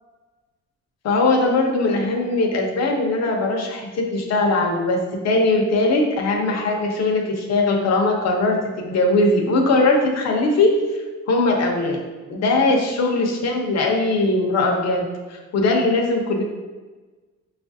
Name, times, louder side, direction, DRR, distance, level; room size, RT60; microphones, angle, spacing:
voice 1, 1.0-10.8 11.3-12.0 12.3-16.4, left 2 dB, 60° left, 1 dB, 0.9 m, -20 dB
6.2 x 2.4 x 2.7 m, 1.3 s
cardioid pair, 90°, 30 cm